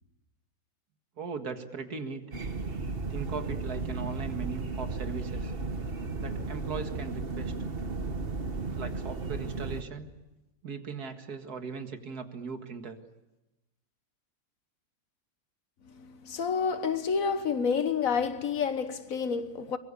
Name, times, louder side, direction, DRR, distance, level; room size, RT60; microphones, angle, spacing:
voice 1, 1.2-2.2 3.1-5.5 6.2-7.5 8.7-10.1 10.6-13.0, right 5 dB, 75° right, 2.3 m, -38 dB
sound 1, 2.3-9.8, right 3 dB, 40° right, 1.5 m, -34 dB
voice 2, 15.9-19.8, left 6 dB, 60° left, 1.6 m, -29 dB
24.0 x 22.5 x 8.4 m
omnidirectional pair, 1.7 m